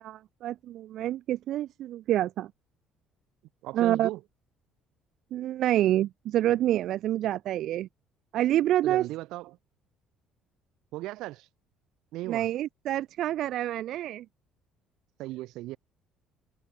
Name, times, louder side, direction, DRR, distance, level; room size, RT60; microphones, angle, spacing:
voice 1, 0.0-2.5 3.7-4.1 5.3-7.9 8.3-9.1 12.3-14.2, right 13 dB, 60° right, 0.9 m, -27 dB
voice 2, 3.6-4.2 8.8-9.6 10.9-11.5 12.1-12.5 15.2-15.8, right 18 dB, 80° right, 1.5 m, -36 dB
cardioid pair, 135°, 0 cm